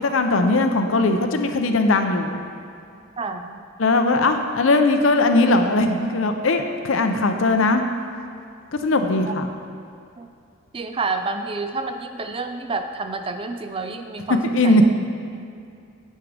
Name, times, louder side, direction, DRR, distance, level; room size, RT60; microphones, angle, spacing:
voice 1, 0.0-2.4 3.8-7.8 8.7-9.5 14.5-14.9, left 2 dB, 70° left, 6 dB, 0.7 m, -19 dB
voice 2, 3.2-3.6 10.2-10.3 10.7-14.9, right 3 dB, 25° right, 7 dB, 0.4 m, -29 dB
9.7 x 8.3 x 3.4 m, 2.5 s
head